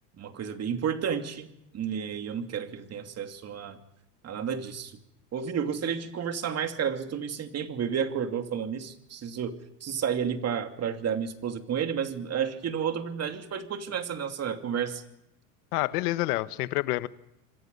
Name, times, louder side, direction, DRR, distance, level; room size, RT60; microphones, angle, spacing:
voice 1, 0.2-1.5 1.7-3.8 4.2-5.0 5.3-15.0, right 7 dB, 35° right, 6 dB, 2.8 m, -31 dB
voice 2, 15.7-17.1, left 19 dB, 75° left, 14 dB, 1.4 m, -28 dB
28.0 x 25.0 x 5.5 m, 0.84 s
supercardioid pair, 120°, 46 cm